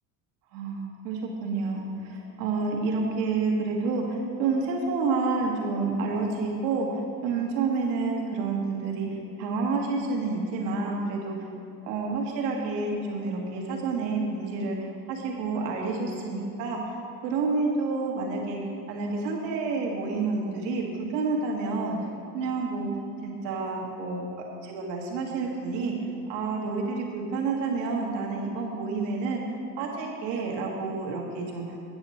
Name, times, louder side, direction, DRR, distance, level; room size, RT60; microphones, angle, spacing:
voice 1, 0.5-6.9 7.2-11.4 11.8-17.0 17.2-18.6 18.9-20.8 21.1-22.0 22.3-22.9 23.2-24.3 24.6-25.9 26.3-29.4 29.8-31.8, right 4 dB, 80° right, -1 dB, 1.8 m, -29 dB
8.8 x 7.2 x 4.2 m, 2.7 s
hypercardioid pair, 85°, 50 cm